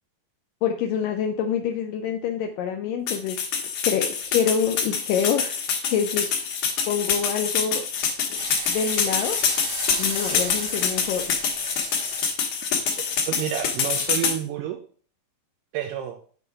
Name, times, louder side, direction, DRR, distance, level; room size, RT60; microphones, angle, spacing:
voice 1, 0.6-3.4 3.8-5.6 5.9-6.3 6.9-7.8 8.3-8.4 8.7-9.4 10.0-11.2, left 7 dB, 85° left, 4 dB, 2.0 m, -26 dB
sound 1, 3.1-14.4, left 6 dB, 60° left, 2.3 m, -26 dB
sound 2, 8.3-12.3, right 3 dB, 50° right, 1.8 m, -36 dB
voice 2, 13.0-14.8 15.7-16.2, right 11 dB, 85° right, 2 dB, 2.7 m, -30 dB
6.8 x 5.5 x 4.7 m, 0.43 s
omnidirectional pair, 4.7 m